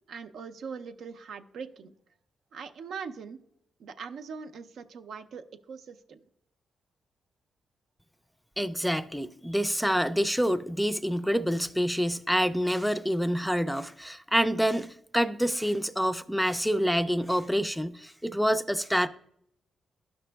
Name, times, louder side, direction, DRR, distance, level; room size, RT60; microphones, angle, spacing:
voice 1, 0.1-1.9 2.5-3.4 3.8-6.2, right 5 dB, 75° right, 0.5 m, -41 dB
voice 2, 8.6-19.1, equal, ahead, 0.3 m, -27 dB
11.5 x 5.9 x 2.2 m
cardioid pair, 80°, 0 cm